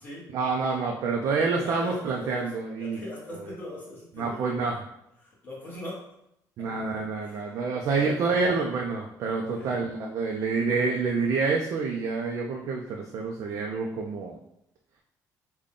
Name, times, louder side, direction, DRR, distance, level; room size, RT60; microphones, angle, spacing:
voice 1, 0.3-3.0 3.3-3.5 4.2-4.8 6.6-14.4, right 4 dB, 50° right, 0 dB, 0.4 m, -28 dB
voice 2, 1.6-2.4 2.8-4.6 5.2-6.0 6.9-7.4 7.9-8.4 9.5-9.7, left 2 dB, 25° left, -5 dB, 1.0 m, -40 dB
3.6 x 2.2 x 3.6 m, 0.79 s
cardioid pair, 175°, 7 cm